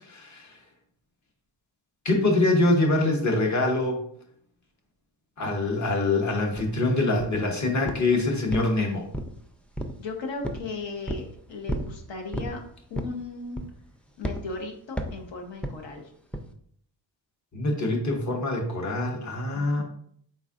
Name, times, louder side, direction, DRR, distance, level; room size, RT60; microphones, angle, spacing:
voice 1, 0.1-0.5 2.0-4.0 5.4-9.1 17.5-19.8, left 2 dB, 40° left, 1 dB, 1.0 m, -24 dB
sound 1, 6.6-6.7 7.2-7.5 7.9-8.1 8.5-9.4 9.8-10.0 10.4-10.7 11.1-11.3 11.7-11.9 12.3-12.6 12.9-13.2 13.6-13.9 14.2-14.4 15.0-15.2 15.6-15.8 16.3-16.5, equal, 5° left, 0.3 m, -32 dB
voice 2, 10.0-12.6 12.9-13.6 14.2-16.1 19.5-19.8, left 3 dB, 80° left, 2 dB, 1.0 m, -36 dB
4.5 x 4.0 x 2.5 m, 0.64 s
wide cardioid pair, 95°, 44 cm